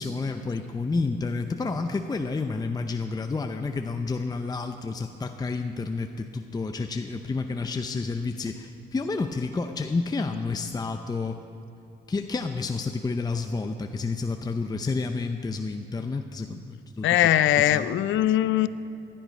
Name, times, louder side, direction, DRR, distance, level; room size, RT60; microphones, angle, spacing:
voice 1, 0.0-11.4 12.1-17.3 17.6-17.9, left 3 dB, 20° left, 6 dB, 0.6 m, -30 dB
voice 2, 17.0-18.7, left 13 dB, 75° left, 15 dB, 0.5 m, -21 dB
16.0 x 11.0 x 5.2 m, 2.8 s
cardioid pair, 90°, 20 cm